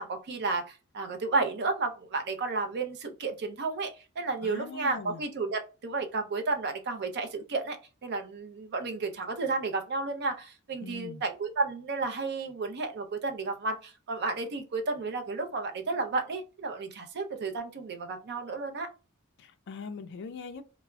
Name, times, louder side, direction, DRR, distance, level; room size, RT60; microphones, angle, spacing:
voice 1, 0.0-7.8 8.0-18.9, right 3 dB, 50° right, 0.5 m, -32 dB
voice 2, 4.4-5.2 10.8-11.2 19.4-20.6, left 4 dB, 55° left, 0.4 m, -41 dB
2.2 x 2.0 x 3.4 m
head